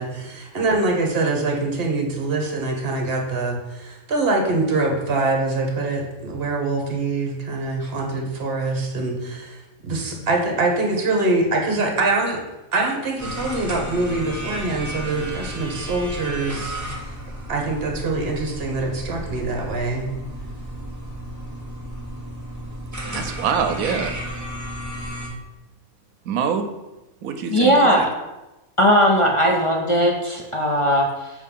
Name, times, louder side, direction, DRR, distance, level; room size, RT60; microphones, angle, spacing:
voice 1, 0.0-9.6 9.8-12.4 12.7-16.8 17.5-20.1, right 3 dB, 45° right, 1 dB, 1.2 m, -24 dB
sound 1, 13.2-25.3, equal, 15° right, 1.3 m, -33 dB
voice 2, 23.1-24.1 26.3-26.7 27.2-28.1, right 7 dB, 85° right, 7 dB, 1.1 m, -25 dB
voice 3, 27.5-28.1 28.8-31.3, equal, 40° left, 0 dB, 0.4 m, -18 dB
6.5 x 3.0 x 5.4 m, 1.0 s
omnidirectional pair, 1.5 m